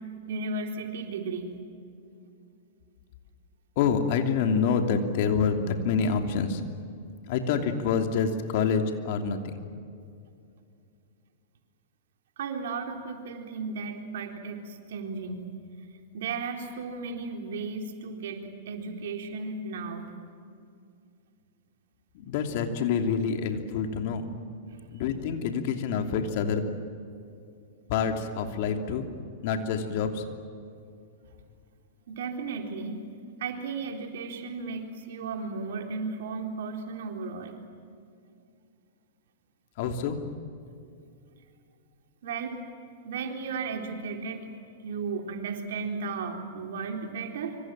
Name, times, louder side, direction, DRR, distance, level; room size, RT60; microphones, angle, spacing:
voice 1, 0.3-1.6 12.4-15.6 16.1-20.2 24.7-24.9 32.1-33.0 33.4-37.6 42.2-42.6 43.0-44.5 44.8-47.6, right 4 dB, 65° right, 3 dB, 3.9 m, -35 dB
voice 2, 3.8-6.6 7.3-9.6 22.1-24.2 24.9-26.7 27.9-29.0 29.4-30.2 39.8-40.2, left 6 dB, 55° left, 5 dB, 2.9 m, -27 dB
25.5 x 25.5 x 7.5 m, 2.4 s
hypercardioid pair, 105°, 0 cm